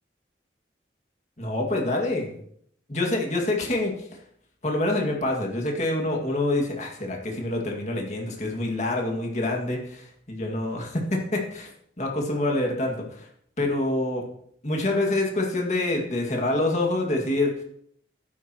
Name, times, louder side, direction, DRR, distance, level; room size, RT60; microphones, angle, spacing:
voice 1, 1.4-2.4 2.9-4.1 4.6-11.7 12.0-13.3 13.6-14.3 14.6-17.6, left 2 dB, 40° left, 1 dB, 2.1 m, -26 dB
11.5 x 10.0 x 3.0 m, 0.67 s
head